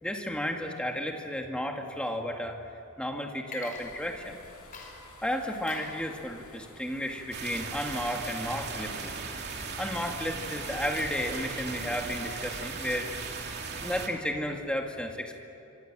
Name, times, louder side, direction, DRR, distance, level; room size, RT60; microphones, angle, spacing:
voice 1, 0.0-2.6 3.0-4.4 5.2-9.1 9.8-13.1 13.8-15.4, equal, 5° left, 2 dB, 2.1 m, -33 dB
Water / Liquid, 3.4-4.4 4.7-13.0, left 2 dB, 40° left, 4.7 m, -49 dB
sound 1, 3.7-12.7, left 2 dB, 90° left, 6.7 m, -52 dB
sound 2, 7.3-14.1, right 4 dB, 50° right, 2.9 m, -37 dB
27.0 x 25.0 x 7.6 m, 2.9 s
head